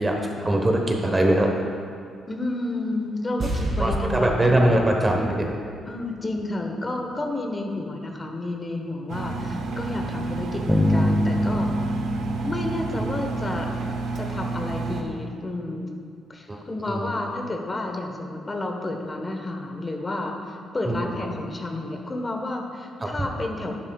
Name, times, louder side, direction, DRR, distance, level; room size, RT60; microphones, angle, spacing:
voice 1, 0.0-1.5 3.8-5.6 12.9-13.1 16.5-16.6 16.9-17.1 20.9-21.0 23.0-23.1, right 1 dB, 20° right, 2 dB, 1.1 m, -22 dB
voice 2, 2.3-4.8 5.9-11.7 12.4-13.7 14.1-15.9 16.3-23.7, left 2 dB, 25° left, 2 dB, 1.2 m, -31 dB
sound 1, 3.4-6.6 6.9-7.0, right 2 dB, 50° right, 2.1 m, -31 dB
Engine, 9.1-15.0, right 3 dB, 75° right, 0.9 m, -30 dB
Bass guitar, 10.7-13.8, left 1 dB, 5° left, 0.9 m, -25 dB
11.5 x 9.7 x 2.4 m, 2.2 s
cardioid pair, 90°, 0 cm